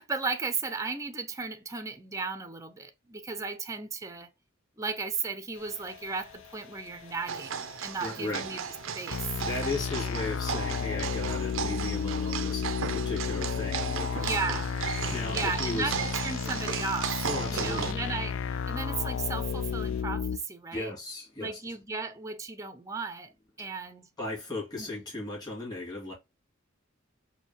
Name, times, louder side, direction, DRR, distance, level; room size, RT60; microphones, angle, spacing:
voice 1, 0.0-4.3 4.8-9.4 14.1-14.7 15.3-17.3 17.5-20.9 21.4-23.3 23.6-24.1 24.8-24.9, right 4 dB, 15° right, 0.6 m, -35 dB
sound 1, 5.5-20.0, left 8 dB, 85° left, 0.8 m, -52 dB
sound 2, 7.3-17.9, right 7 dB, 75° right, 0.5 m, -35 dB
voice 2, 8.0-8.4 9.4-14.5 15.1-15.9 17.3-17.9 20.7-21.6 24.2-26.1, left 2 dB, 20° left, 2.3 m, -36 dB
sound 3, 9.1-20.4, left 6 dB, 70° left, 0.4 m, -32 dB
4.6 x 2.8 x 2.8 m
head